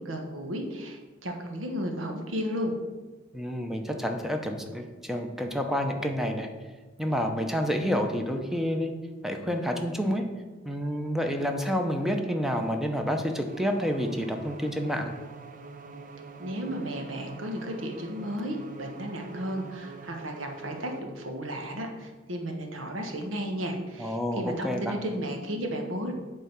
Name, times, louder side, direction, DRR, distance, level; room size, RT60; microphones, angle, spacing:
voice 1, 0.0-2.7 16.4-26.1, equal, 80° right, 3 dB, 1.2 m, -34 dB
voice 2, 3.3-6.5 7.0-8.9 9.2-10.2 10.6-15.1 24.0-25.0, equal, ahead, 4 dB, 0.7 m, -29 dB
sound 1, 13.5-21.0, right 4 dB, 45° right, 0.6 m, -44 dB
8.7 x 3.7 x 5.9 m, 1.3 s
head